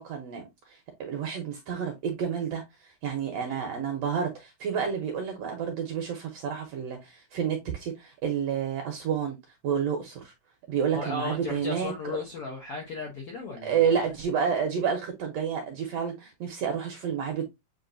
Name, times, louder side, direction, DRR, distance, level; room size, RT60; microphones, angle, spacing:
voice 1, 0.0-9.4 9.6-10.3 10.7-11.9 13.6-17.4, right 7 dB, 70° right, 1.6 m, -30 dB
voice 2, 10.9-14.1, left 3 dB, 70° left, 1.4 m, -36 dB
7.6 x 2.5 x 2.5 m
omnidirectional pair, 3.7 m